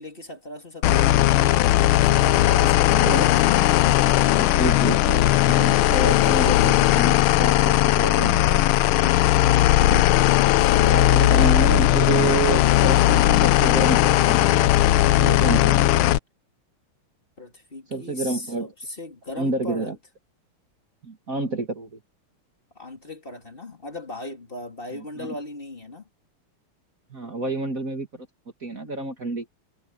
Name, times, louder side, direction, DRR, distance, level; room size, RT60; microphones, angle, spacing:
voice 1, 0.0-3.7 7.7-7.9 10.6-11.0 15.2-15.6 17.4-19.9 22.7-26.1, left 2 dB, 25° left, 2.9 m, -38 dB
sound 1, 0.8-16.2, left 14 dB, 75° left, 1.4 m, -18 dB
voice 2, 2.9-3.3 4.4-8.5 9.8-10.0 10.9-14.5 15.2-15.8 17.9-18.7 19.4-20.0 21.0-22.0 25.2-25.3 27.1-28.3 28.6-29.5, right 3 dB, 40° right, 2.6 m, -28 dB
omnidirectional pair, 2.4 m